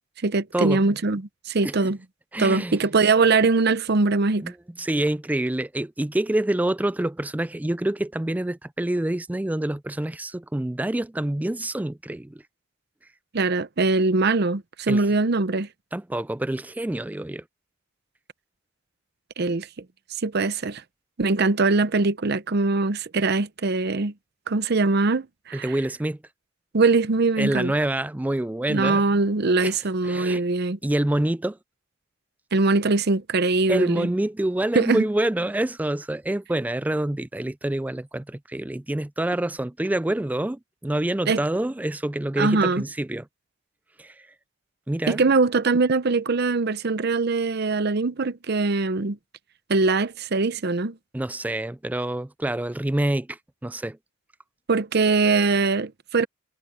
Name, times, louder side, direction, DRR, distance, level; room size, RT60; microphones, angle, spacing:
voice 1, 0.2-2.0 2.4-4.4 13.3-15.7 19.4-19.7 20.2-20.8 21.2-24.1 24.5-25.7 26.7-27.7 28.7-30.8 32.5-34.1 34.7-35.1 41.3-41.4 42.4-42.8 45.1-49.2 49.7-51.0 54.7-56.3, right 3 dB, 55° right, 0.7 m, -22 dB
voice 2, 2.3-2.8 4.4-12.4 14.9-15.1 15.9-17.4 25.5-26.2 27.4-29.0 29.6-29.8 30.0-30.4 30.8-31.6 33.7-43.3 44.0-44.1 44.9-45.2 51.1-54.0, right 1 dB, 10° right, 0.3 m, -27 dB
head